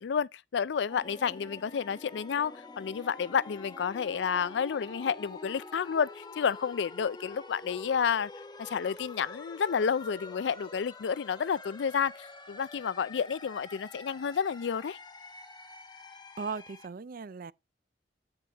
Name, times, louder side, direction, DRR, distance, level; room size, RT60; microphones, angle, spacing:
voice 1, 0.0-8.3 8.6-15.0, left 7 dB, 75° left, 0.4 m, -30 dB
sound 1, 0.9-16.9, left 3 dB, 25° left, 1.2 m, -47 dB
voice 2, 16.4-17.5, right 5 dB, 55° right, 0.5 m, -38 dB
8.5 x 6.8 x 2.9 m
head